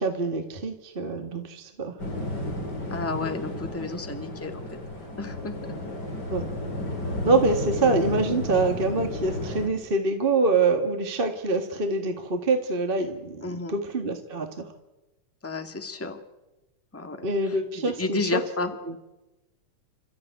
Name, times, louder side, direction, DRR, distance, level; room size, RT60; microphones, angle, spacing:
voice 1, 0.0-1.9 6.3-6.5 7.2-14.7 17.2-18.4, right 3 dB, 20° right, 5 dB, 1.6 m, -25 dB
sound 1, 2.0-9.7, left 1 dB, 35° left, 5.4 m, -32 dB
voice 2, 2.9-4.6 5.2-5.8 13.4-13.8 15.4-16.2 16.9-18.7, left 3 dB, 5° left, 5 dB, 1.5 m, -32 dB
30.0 x 14.5 x 9.4 m, 1.0 s
omnidirectional pair, 3.3 m